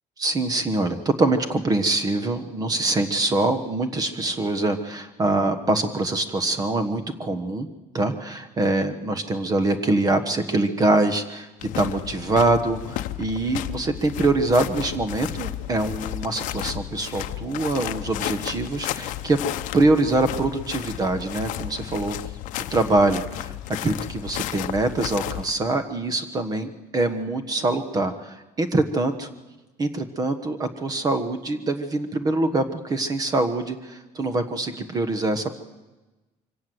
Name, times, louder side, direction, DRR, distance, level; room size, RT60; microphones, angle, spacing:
voice 1, 0.2-7.7 7.9-11.5 11.8-19.4 19.7-22.2 22.7-23.5 23.8-29.3 29.8-35.5, right 2 dB, 30° right, 10 dB, 1.3 m, -24 dB
sound 1, 11.6-25.5, left 14 dB, 70° left, 0.9 m, -33 dB
24.5 x 17.0 x 7.9 m, 1.1 s
cardioid pair, 145°, 14 cm